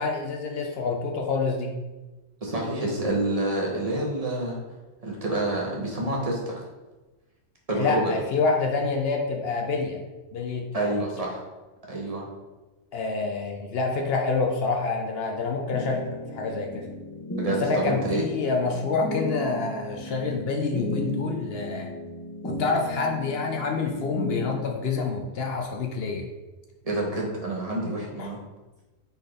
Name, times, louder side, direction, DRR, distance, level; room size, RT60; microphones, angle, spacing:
voice 1, 0.0-1.7 7.7-10.0 10.3-11.0 12.9-16.0 16.3-16.9 17.6-21.9 22.4-26.2 28.2-28.3, left 4 dB, 60° left, 2 dB, 0.7 m, -27 dB
voice 2, 2.4-4.6 5.0-6.6 7.7-8.1 10.7-11.4 11.9-12.2 17.4-18.2 26.8-28.4, right 2 dB, 35° right, -3 dB, 0.8 m, -28 dB
sound 1, 15.7-24.6, left 1 dB, 15° left, 0.5 m, -35 dB
4.1 x 4.0 x 3.2 m, 1.1 s
omnidirectional pair, 1.3 m